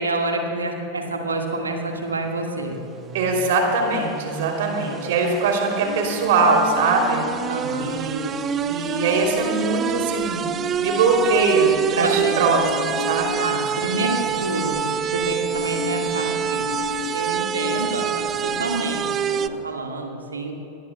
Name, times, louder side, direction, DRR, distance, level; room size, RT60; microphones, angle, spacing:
voice 1, 0.0-2.8 7.5-8.0 11.9-12.4 13.4-14.8 15.1-16.7 17.1-19.1 19.3-20.6, right 2 dB, 75° right, 2 dB, 1.8 m, -27 dB
sound 1, 2.7-19.5, right 8 dB, 25° right, 0.4 m, -27 dB
voice 2, 3.1-7.2 7.8-8.3 8.7-10.5 10.8-13.4, right 3 dB, 55° right, 1 dB, 3.2 m, -21 dB
sound 2, 5.8-19.6, left 5 dB, 55° left, 2.7 m, -35 dB
24.0 x 19.5 x 2.3 m, 2.8 s
figure-of-eight pair, 90°, 0 cm